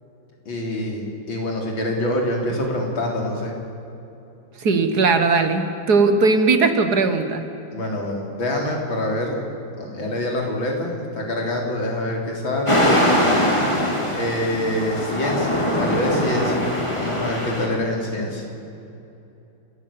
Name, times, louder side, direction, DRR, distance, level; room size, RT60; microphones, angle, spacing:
voice 1, 0.5-3.5 7.7-9.3 9.8-12.9 14.1-18.4, left 1 dB, 85° left, 0 dB, 4.4 m, -25 dB
voice 2, 4.6-7.4, right 3 dB, 55° right, 8 dB, 1.9 m, -18 dB
sound 1, 12.7-17.7, equal, 15° left, 3.4 m, -22 dB
29.5 x 13.5 x 8.7 m, 2.8 s
omnidirectional pair, 2.1 m